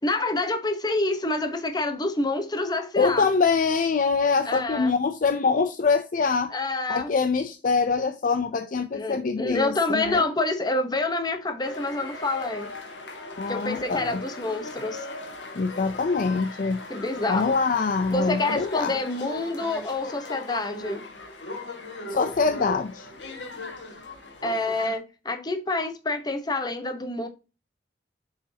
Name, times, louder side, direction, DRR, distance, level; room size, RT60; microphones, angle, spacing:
voice 1, 0.0-3.3 4.5-4.9 6.5-7.1 8.9-12.7 13.5-15.1 16.9-17.5 18.1-21.0 24.4-27.3, left 2 dB, 25° left, 1.0 m, -27 dB
voice 2, 3.0-6.5 6.9-10.2 13.4-14.2 15.5-16.8 17.3-18.9 22.1-23.1, left 4 dB, 45° left, 0.5 m, -24 dB
sound 1, 11.6-25.0, left 2 dB, 85° left, 1.7 m, -38 dB
7.1 x 4.9 x 2.8 m
head